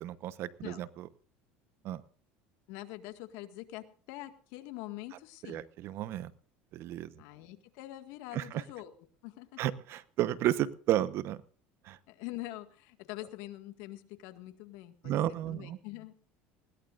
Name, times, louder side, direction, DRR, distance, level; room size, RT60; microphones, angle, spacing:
voice 1, 0.0-1.1 1.8-2.0 5.5-6.3 6.7-7.1 8.3-8.6 9.6-11.4 11.8-12.0 15.0-15.8, right 13 dB, 55° right, 15 dB, 1.1 m, -32 dB
voice 2, 2.7-5.7 7.2-8.9 9.2-9.6 12.1-15.1 15.5-16.1, left 16 dB, 70° left, 8 dB, 1.9 m, -44 dB
20.5 x 17.5 x 2.6 m, 0.43 s
supercardioid pair, 120°, 5 cm